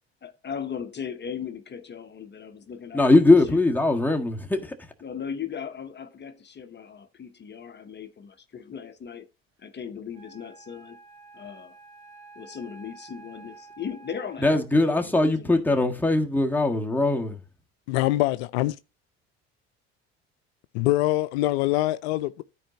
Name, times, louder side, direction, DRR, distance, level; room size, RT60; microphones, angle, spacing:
voice 1, 0.2-3.2 3.5-3.6 5.0-9.3 9.6-11.0 11.3-11.7 12.4-15.8, left 7 dB, 35° left, 0.9 m, -38 dB
voice 2, 2.9-4.7 14.4-17.4, left 2 dB, 5° left, 1.6 m, -21 dB
Wind instrument woodwind instrument, 10.1-14.7, right 4 dB, 85° right, 1.7 m, -49 dB
voice 3, 17.9-18.8 20.7-22.4, left 17 dB, 80° left, 0.5 m, -24 dB
13.0 x 4.7 x 2.8 m
hypercardioid pair, 65°, 32 cm